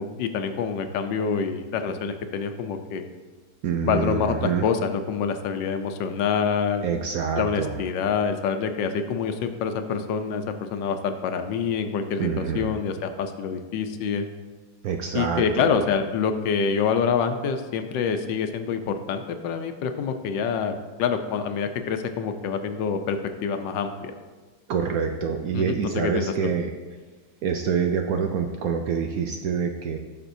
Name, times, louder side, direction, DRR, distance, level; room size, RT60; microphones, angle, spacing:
voice 1, 0.0-3.1 3.8-6.8 7.4-10.4 10.7-14.3 15.1-24.1 25.5-26.5, left 6 dB, 80° left, 7 dB, 1.3 m, -26 dB
voice 2, 3.6-4.6 6.8-7.8 12.2-12.7 14.8-15.8 24.7-26.7 27.4-30.0, right 6 dB, 70° right, 4 dB, 0.9 m, -26 dB
14.5 x 6.0 x 2.7 m, 1.3 s
omnidirectional pair, 2.0 m